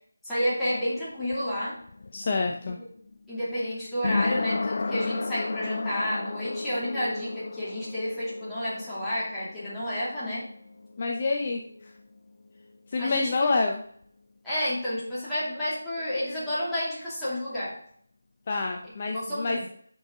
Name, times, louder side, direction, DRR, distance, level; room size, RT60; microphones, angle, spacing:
voice 1, 0.2-1.8 3.3-10.5 13.0-13.5 14.4-17.8 19.1-19.7, equal, ahead, -13 dB, 2.7 m, -30 dB
sound 1, 0.9-12.5 12.7-12.8, left 3 dB, 55° left, 0.4 m, -34 dB
voice 2, 2.1-2.8 11.0-11.9 12.9-13.8 18.5-19.6, left 3 dB, 35° left, 2 dB, 0.7 m, -27 dB
9.3 x 5.6 x 3.7 m, 0.62 s
figure-of-eight pair, 170°, 0 cm